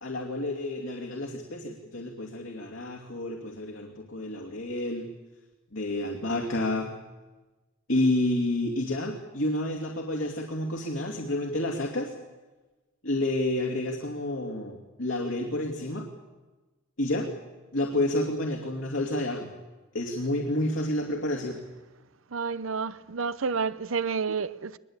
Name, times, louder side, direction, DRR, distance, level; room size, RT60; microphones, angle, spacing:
voice 1, 0.0-5.1 5.7-6.9 7.9-12.1 13.0-16.1 17.0-17.3 17.7-19.5 19.9-21.6, left 1 dB, 70° left, 2.7 m, -29 dB
voice 2, 22.3-24.8, right 5 dB, 75° right, 0.7 m, -30 dB
22.5 x 21.0 x 8.9 m
head